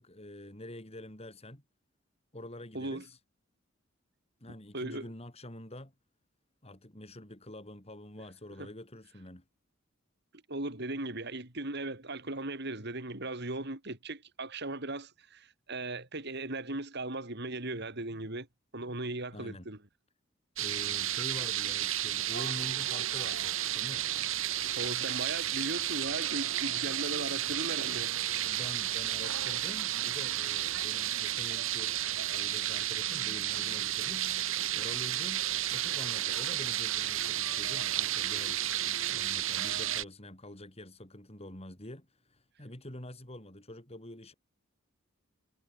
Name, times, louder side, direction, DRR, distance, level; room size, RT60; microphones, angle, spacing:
voice 1, 0.0-1.6 2.3-3.2 4.4-5.9 6.6-9.4 19.3-19.7 20.6-24.1 28.4-32.0 32.3-44.3, left 1 dB, 30° left, 3.9 m, -46 dB
voice 2, 2.7-3.0 4.7-5.1 8.6-8.7 10.5-18.5 18.7-19.8 24.8-28.2, right 2 dB, 55° right, 3.6 m, -37 dB
sound 1, 20.6-40.0, right 12 dB, 80° right, 3.3 m, -32 dB
head